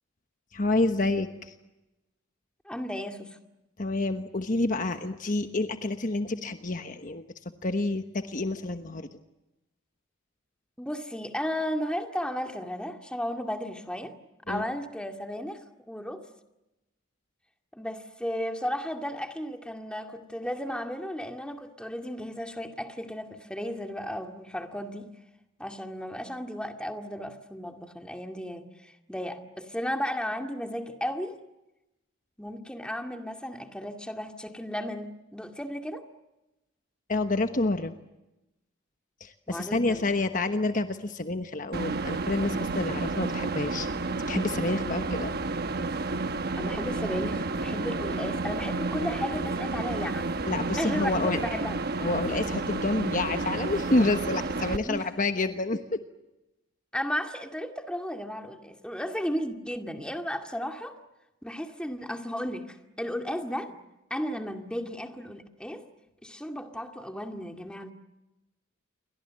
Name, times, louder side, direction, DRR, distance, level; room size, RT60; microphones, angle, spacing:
voice 1, 0.5-1.5 3.8-7.3 7.6-9.1 14.5-14.6 37.1-37.9 39.2-43.9 44.3-45.3 50.5-51.4 52.0-56.0, left 2 dB, 40° left, 1.2 m, -28 dB
voice 2, 2.6-3.4 10.8-14.2 14.5-16.3 17.7-25.1 25.6-31.4 32.4-36.0 39.5-40.1 46.6-50.3 50.8-51.8 54.8-55.1 56.9-60.9 61.4-63.8 64.1-65.9 66.2-67.9, equal, 5° left, 2.1 m, -34 dB
sound 1, 41.7-54.8, right 3 dB, 50° right, 1.1 m, -31 dB
29.5 x 24.0 x 7.6 m
head